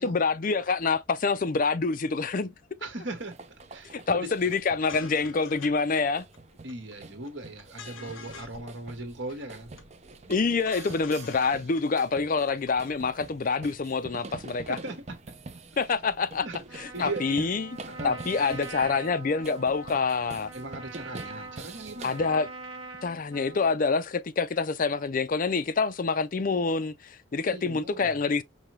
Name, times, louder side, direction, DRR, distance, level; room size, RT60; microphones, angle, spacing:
voice 1, 0.0-2.5 3.9-6.2 10.3-14.8 15.8-16.5 16.8-17.8 18.0-20.5 22.0-22.5 23.0-28.4, left 4 dB, 40° left, 0.4 m, -26 dB
voice 2, 2.8-3.4 3.7-4.3 6.6-9.7 14.7-15.2 16.4-17.5 17.9-18.9 20.5-22.2 27.5-28.1, right 2 dB, 60° right, 1.6 m, -39 dB
sound 1, 3.2-22.4, right 3 dB, 35° right, 0.6 m, -46 dB
sound 2, 4.5-4.6 4.9-5.7 6.0-6.1 6.3-7.0 7.2-8.6 8.9-9.0 9.2-9.8 10.1-11.5 11.8-11.9 12.1-12.7, left 5 dB, 70° left, 0.8 m, -46 dB
Trumpet, 16.7-23.8, right 2 dB, 80° right, 0.9 m, -44 dB
5.2 x 2.8 x 3.1 m
head